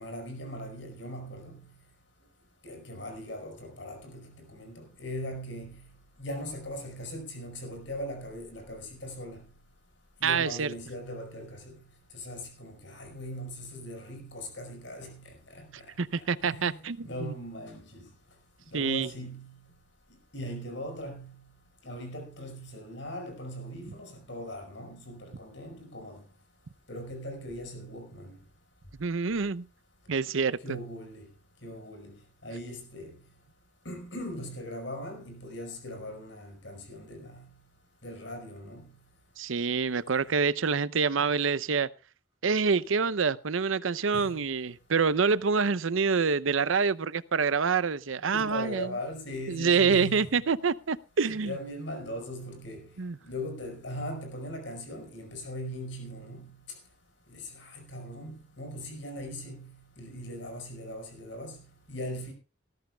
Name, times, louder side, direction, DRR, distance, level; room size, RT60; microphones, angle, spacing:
voice 1, 0.0-1.6 2.6-5.8 6.2-9.4 10.2-11.7 12.1-15.6 16.4-18.0 18.7-19.5 20.3-21.3 21.8-26.2 26.9-28.4 30.6-31.3 31.6-32.1 32.4-33.1 33.8-37.4 38.0-38.9 44.1-44.4 48.3-50.4 51.2-52.9 53.2-56.5 57.3-61.6 61.9-62.3, equal, 70° left, 5.0 m, -40 dB
voice 2, 10.2-10.7 16.0-17.3 18.7-19.1 29.0-29.6 30.1-30.6 39.4-41.9 42.4-48.9 49.5-51.6 53.0-53.2, right 5 dB, 85° right, 0.6 m, -26 dB
19.0 x 13.5 x 2.3 m
head